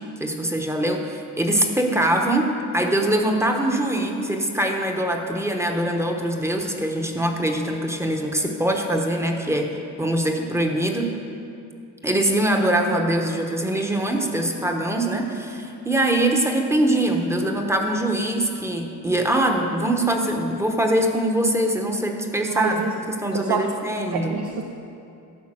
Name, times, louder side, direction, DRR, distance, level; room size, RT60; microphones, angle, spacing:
voice 1, 0.2-9.7 10.0-11.1 12.0-22.8 23.2-24.4, right 1 dB, 5° right, 3 dB, 0.9 m, -23 dB
voice 2, 22.5-22.9 23.3-23.7 24.1-24.6, right 5 dB, 75° right, 2 dB, 0.8 m, -26 dB
12.0 x 5.7 x 7.5 m, 2.6 s
cardioid pair, 140°, 36 cm